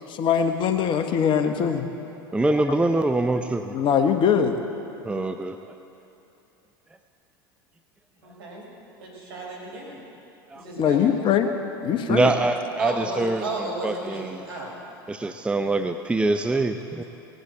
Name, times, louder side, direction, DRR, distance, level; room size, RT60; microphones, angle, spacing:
voice 1, 0.1-1.9 3.7-4.6 10.8-11.5 11.8-12.3, left 7 dB, 40° left, 6 dB, 1.2 m, -22 dB
voice 2, 2.3-3.8 5.0-5.6 10.5-10.6 12.1-14.5 15.1-17.0, right 2 dB, 10° right, 7 dB, 0.6 m, -24 dB
voice 3, 8.2-8.7 9.0-10.0 10.5-11.1 12.8-14.7, right 2 dB, 75° right, -1 dB, 4.1 m, -33 dB
18.0 x 8.1 x 7.9 m, 2.9 s
hypercardioid pair, 80°, 12 cm